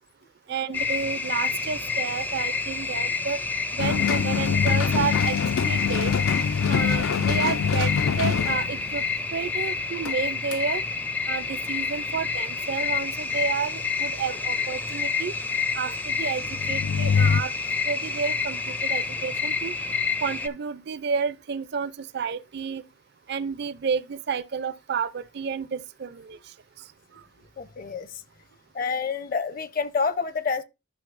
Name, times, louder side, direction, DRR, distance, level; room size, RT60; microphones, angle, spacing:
voice 1, 0.5-3.4 3.7-5.4 5.7-6.1 6.7-7.9 8.2-9.0 9.3-10.8 11.3-15.3 15.8-17.5 17.9-19.7 20.2-22.8 23.3-26.4, right 6 dB, 50° right, 0.4 m, -30 dB
sound 1, 0.7-20.5, left 5 dB, 10° left, 0.4 m, -29 dB
sound 2, 3.8-9.3 9.6-9.7 10.1-10.2 10.5-10.6 16.4-17.4, left 6 dB, 80° left, 0.4 m, -24 dB
voice 2, 27.6-28.2 28.7-30.6, left 5 dB, 40° left, 0.7 m, -28 dB
12.0 x 5.9 x 2.5 m
head